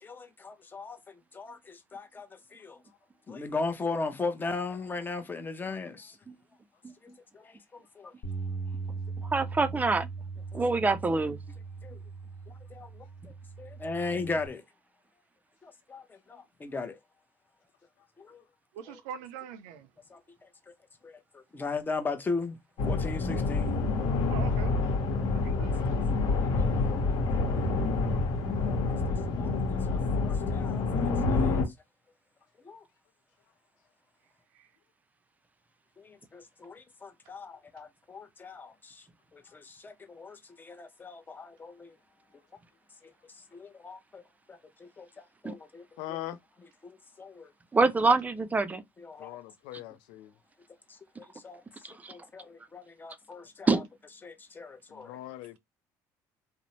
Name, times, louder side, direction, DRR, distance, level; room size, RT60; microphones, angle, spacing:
voice 1, 0.0-2.8 3.3-6.2 7.0-8.1 10.5-10.6 11.8-12.0 12.7-14.6 15.6-17.0 18.2-18.4 18.9-19.0 20.1-20.5 21.0-22.6 22.8-23.9 25.4-25.5 26.2-27.5 29.4-31.6 32.6-32.8 36.0-39.0 39.3-41.9 43.5-44.2 44.5-45.8 46.8-47.5 49.0-49.4 50.9-51.6 52.1-53.8 54.2-55.2, left 3 dB, 25° left, 0.7 m, -38 dB
Bass guitar, 8.2-14.5, right 4 dB, 50° left, 1.2 m, -39 dB
voice 2, 9.3-10.1 10.5-11.4 45.4-45.5 47.7-48.8 52.0-52.1 53.7-53.9, right 3 dB, 20° right, 0.4 m, -25 dB
voice 3, 18.7-19.9 24.3-24.7 25.2-26.1 34.5-34.7, right 8 dB, 90° right, 0.5 m, -43 dB
sound 1, 22.8-31.6, left 3 dB, 70° left, 1.0 m, -27 dB
voice 4, 46.0-46.4 49.2-50.3 54.9-55.6, left 14 dB, 85° left, 0.4 m, -41 dB
2.6 x 2.0 x 3.0 m
supercardioid pair, 95°, 8 cm